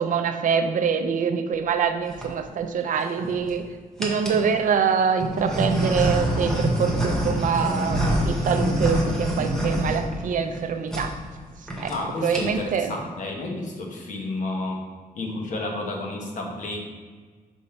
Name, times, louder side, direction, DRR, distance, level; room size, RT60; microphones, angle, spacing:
voice 1, 0.0-3.6 4.0-11.1 11.8-11.9 12.2-12.9, right 6 dB, 60° right, 7 dB, 0.5 m, -25 dB
sound 1, 1.9-2.3 3.0-3.5 4.0-4.5 5.2-10.6 10.9-11.1 11.4-11.5 11.7-12.0 12.2-12.7, equal, 5° left, 1.0 m, -25 dB
voice 2, 11.9-14.9 15.1-16.9, left 2 dB, 55° left, 0 dB, 1.1 m, -31 dB
5.7 x 5.2 x 4.4 m, 1.5 s
wide cardioid pair, 175°, 15 cm